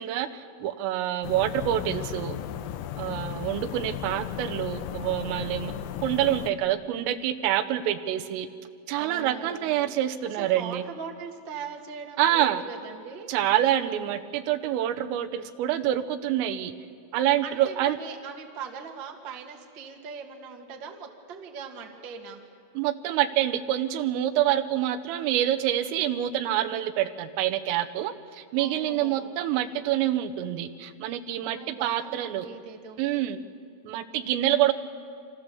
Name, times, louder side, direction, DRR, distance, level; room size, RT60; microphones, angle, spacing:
voice 1, 0.0-2.4 3.0-5.7 6.0-8.5 8.9-10.8 12.2-12.6 13.3-16.7 17.1-18.0 22.8-32.5 33.0-33.4 33.9-34.7, right 12 dB, 85° right, 9 dB, 3.5 m, -26 dB
sound 1, 1.2-6.5, left 11 dB, 80° left, 2.8 m, -35 dB
voice 2, 5.5-5.9 9.0-9.9 10.2-13.3 17.4-22.4 28.6-29.7 31.4-33.0, right 6 dB, 55° right, 1 dB, 1.3 m, -41 dB
29.5 x 26.0 x 7.0 m, 2.3 s
omnidirectional pair, 5.8 m